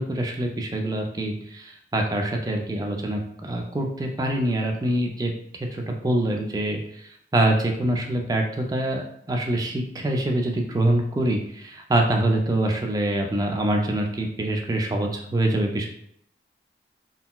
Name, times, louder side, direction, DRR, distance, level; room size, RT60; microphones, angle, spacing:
voice 1, 0.0-5.3 5.6-15.9, right 1 dB, 20° right, 2 dB, 0.3 m, -25 dB
3.9 x 2.0 x 2.2 m, 0.69 s
head